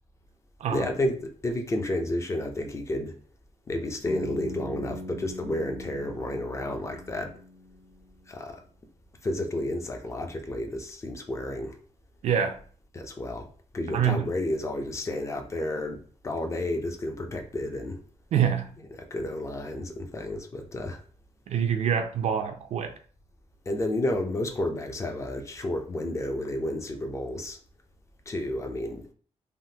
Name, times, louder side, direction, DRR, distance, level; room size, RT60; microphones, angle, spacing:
voice 1, 0.7-3.1 3.7-7.3 8.3-8.6 9.2-11.8 12.9-13.5 13.7-18.0 18.9-21.0 23.7-27.6 28.3-29.1, left 1 dB, 25° left, 0.4 m, -31 dB
Bass guitar, 4.1-8.1, left 1 dB, 65° left, 0.8 m, -41 dB
voice 2, 12.2-12.6 13.9-14.3 18.3-18.7 21.5-22.9, right 8 dB, 75° right, 0.4 m, -25 dB
3.4 x 2.1 x 2.7 m
wide cardioid pair, 155°, 12 cm